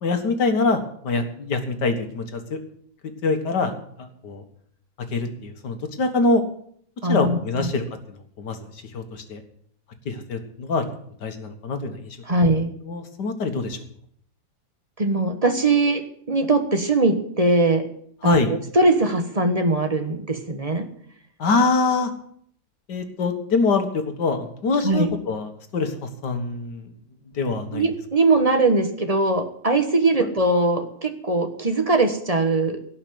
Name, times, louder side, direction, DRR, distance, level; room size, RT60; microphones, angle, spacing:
voice 1, 0.0-2.6 3.0-4.4 5.1-6.4 7.1-9.4 10.1-10.8 11.2-12.2 12.8-13.8 18.2-18.5 21.4-22.1 22.9-26.9 27.3-27.9, left 3 dB, 90° left, 7 dB, 2.2 m, -24 dB
voice 2, 7.0-7.7 12.3-12.7 15.0-17.9 18.2-18.4 18.7-20.9 24.8-25.1 27.7-32.8, right 2 dB, 25° right, 7 dB, 1.2 m, -21 dB
17.0 x 5.8 x 9.2 m, 0.65 s
omnidirectional pair, 1.8 m